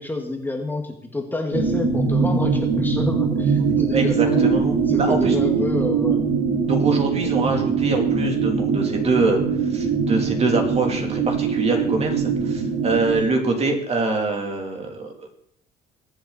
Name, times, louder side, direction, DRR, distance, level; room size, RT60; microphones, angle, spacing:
voice 1, 0.0-4.4 4.9-6.2, left 2 dB, 10° left, 3 dB, 1.8 m, -28 dB
sound 1, 1.5-13.2, right 5 dB, 90° right, 4.1 m, -22 dB
voice 2, 3.9-5.4 6.7-9.4 9.7-15.3, right 3 dB, 40° right, 2 dB, 3.2 m, -24 dB
22.0 x 7.9 x 4.2 m, 0.66 s
cardioid pair, 110°, 17 cm